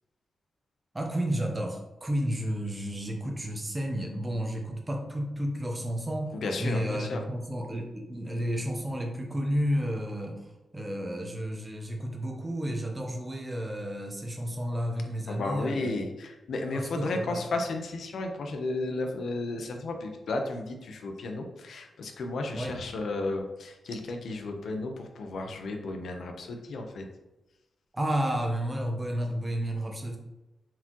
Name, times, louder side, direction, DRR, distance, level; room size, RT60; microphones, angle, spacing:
voice 1, 0.9-6.3 6.6-16.0 16.7-17.4 22.5-22.8 27.9-30.2, equal, 15° right, 1 dB, 1.0 m, -31 dB
voice 2, 6.4-7.2 15.3-27.1, left 2 dB, 65° left, 4 dB, 0.9 m, -33 dB
7.4 x 4.8 x 3.1 m, 1.0 s
wide cardioid pair, 160°, 0 cm